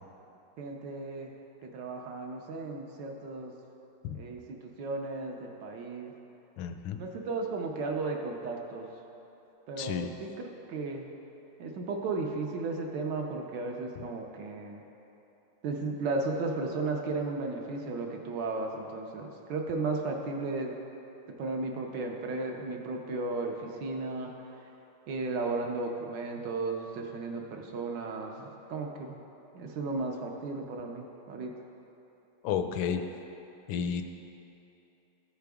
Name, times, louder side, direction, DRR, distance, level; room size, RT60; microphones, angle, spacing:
voice 1, 0.6-1.3 1.6-3.5 4.2-6.1 7.0-8.9 9.7-11.1 11.6-14.8 15.6-20.7 21.4-24.3 25.1-29.2 29.5-31.5, right 3 dB, 70° right, 1 dB, 1.2 m, -35 dB
voice 2, 6.6-7.0 9.8-10.1 32.4-33.0 33.7-34.0, left 7 dB, 75° left, 8 dB, 1.2 m, -31 dB
14.0 x 4.9 x 3.5 m, 3.0 s
omnidirectional pair, 2.3 m